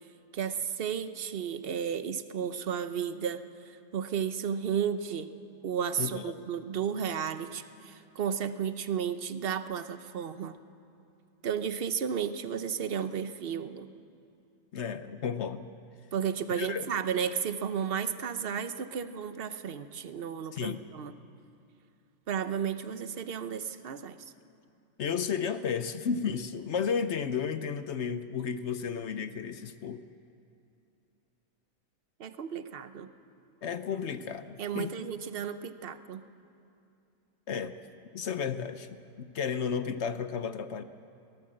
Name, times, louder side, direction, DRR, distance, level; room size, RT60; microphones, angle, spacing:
voice 1, 0.3-5.3 5.6-10.6 11.4-13.9 16.1-21.1 22.3-24.2 32.2-33.1 34.6-36.2, right 7 dB, 50° right, 11 dB, 1.0 m, -33 dB
voice 2, 6.0-6.3 14.7-15.7 16.6-16.9 20.5-20.8 25.0-30.0 33.6-34.9 37.5-37.7 38.1-38.9 39.2-40.8, left 6 dB, 60° left, 11 dB, 1.0 m, -33 dB
23.0 x 17.5 x 7.7 m, 2.7 s
omnidirectional pair, 1.4 m